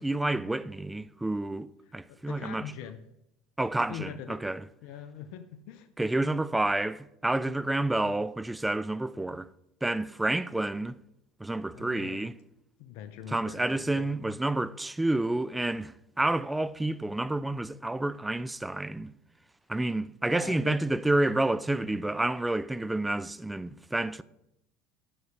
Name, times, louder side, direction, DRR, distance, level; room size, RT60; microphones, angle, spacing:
voice 1, 0.0-2.7 3.6-4.6 6.0-9.5 9.8-11.0 11.4-12.3 13.3-19.1 19.7-24.2, right 2 dB, 10° right, 0.4 m, -29 dB
voice 2, 2.1-3.0 3.9-4.4 4.8-5.9 11.7-12.2 12.8-14.1 20.3-20.8, left 9 dB, 70° left, 0.7 m, -42 dB
11.0 x 6.4 x 4.8 m
hypercardioid pair, 90°, 0 cm